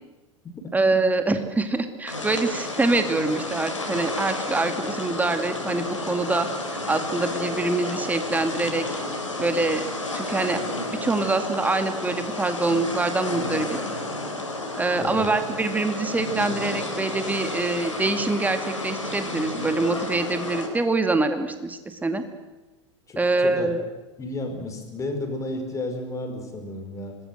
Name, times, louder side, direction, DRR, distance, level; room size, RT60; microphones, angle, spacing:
voice 1, 0.7-6.5 6.9-8.8 9.4-9.9 10.1-10.6 10.9-13.7 14.8-22.3 23.2-23.8, right 3 dB, 10° right, 7 dB, 2.4 m, -25 dB
sound 1, 2.1-20.7, left 2 dB, 80° left, 4.5 m, -31 dB
voice 2, 15.0-15.3 23.1-23.7 24.2-27.2, left 2 dB, 20° left, 5 dB, 5.4 m, -32 dB
25.5 x 20.5 x 8.0 m, 1.1 s
figure-of-eight pair, 85°, 16 cm